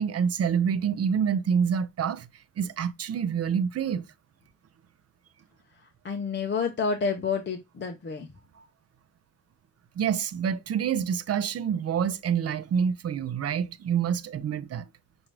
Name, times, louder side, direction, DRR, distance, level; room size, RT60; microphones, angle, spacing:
voice 1, 0.0-2.3 2.6-4.0 8.6-8.7 10.0-14.9, right 7 dB, 45° right, 0.4 m, -27 dB
voice 2, 6.0-8.3, left 5 dB, 30° left, 0.5 m, -29 dB
5.8 x 2.6 x 3.0 m
wide cardioid pair, 165°, 37 cm